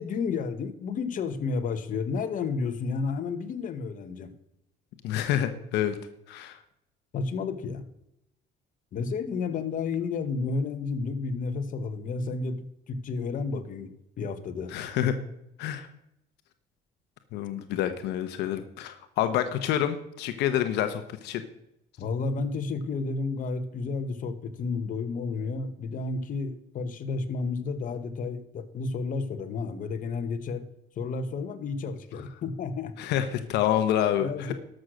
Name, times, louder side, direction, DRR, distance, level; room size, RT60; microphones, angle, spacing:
voice 1, 0.0-4.3 7.1-7.9 8.9-13.9 14.2-14.7 22.0-30.7 31.0-32.9 34.2-34.5, left 4 dB, 50° left, 9 dB, 1.2 m, -31 dB
voice 2, 5.0-5.9 6.3-6.6 14.7-15.1 15.6-15.9 17.3-21.4 33.0-34.5, left 11 dB, 85° left, 9 dB, 0.9 m, -27 dB
12.5 x 6.5 x 6.3 m, 0.82 s
cardioid pair, 110°, 17 cm